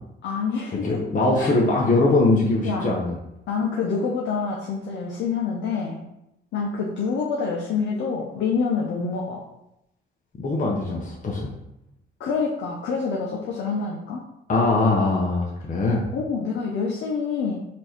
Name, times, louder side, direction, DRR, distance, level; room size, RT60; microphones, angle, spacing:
voice 1, 0.2-1.0 1.4-1.6 2.6-2.9 3.5-6.0 6.5-9.4 12.2-14.2 16.1-17.7, left 5 dB, 70° left, -2 dB, 0.7 m, -27 dB
voice 2, 0.8-3.1 10.4-11.5 14.5-16.1, left 2 dB, 40° left, -2 dB, 0.8 m, -21 dB
4.5 x 2.7 x 4.4 m, 0.84 s
cardioid pair, 90°, 20 cm